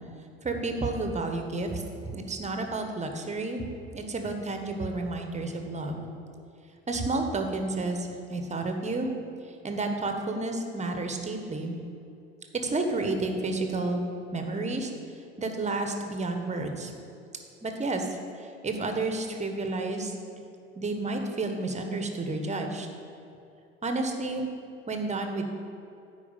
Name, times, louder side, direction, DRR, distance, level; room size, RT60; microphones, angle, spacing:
voice 1, 0.4-3.6 3.9-6.1 6.9-9.1 9.6-11.8 12.6-14.0 14.3-14.9 15.4-16.9 17.6-20.1 20.8-22.9 23.8-24.5 24.9-25.4, right 2 dB, 20° right, 5 dB, 1.2 m, -31 dB
9.8 x 4.7 x 7.3 m, 2.7 s
figure-of-eight pair, 65°, 35 cm